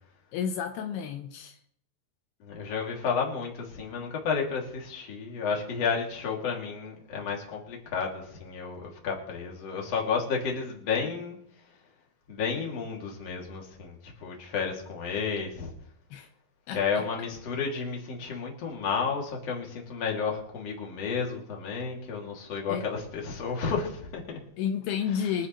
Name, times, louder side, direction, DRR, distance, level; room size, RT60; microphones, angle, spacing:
voice 1, 0.3-1.6 16.1-16.3 16.7-17.0 22.7-22.9 24.6-25.5, left 8 dB, 80° left, 2.7 m, -31 dB
voice 2, 2.4-11.4 12.3-15.7 16.7-24.4, left 5 dB, 45° left, 3.1 m, -32 dB
24.0 x 10.0 x 3.0 m
omnidirectional pair, 4.5 m